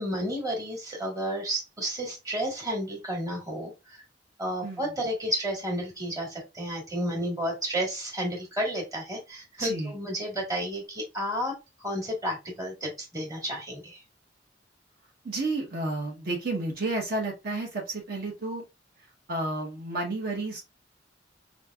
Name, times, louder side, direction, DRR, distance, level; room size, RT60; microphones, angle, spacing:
voice 1, 0.0-4.0 4.4-11.5 11.8-14.0, equal, 20° right, -1 dB, 1.5 m, -31 dB
voice 2, 9.6-9.9 15.2-18.6 19.3-20.6, right 2 dB, 55° right, 0 dB, 0.9 m, -31 dB
5.1 x 2.6 x 2.3 m, 0.24 s
head